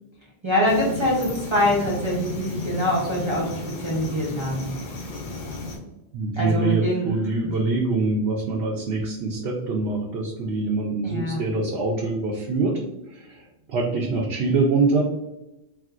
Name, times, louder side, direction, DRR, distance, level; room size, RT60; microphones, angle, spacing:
voice 1, 0.4-4.7 6.4-7.1 11.0-11.4, equal, 30° right, -4 dB, 0.6 m, -24 dB
sound 1, 0.7-5.8, left 3 dB, 55° left, 0.8 m, -34 dB
voice 2, 6.1-12.8 13.1-15.0, right 3 dB, 75° right, -3 dB, 0.8 m, -24 dB
Sigh, 6.9-7.6, right 3 dB, 75° left, 1.3 m, -37 dB
4.3 x 2.1 x 2.4 m, 0.94 s
omnidirectional pair, 1.1 m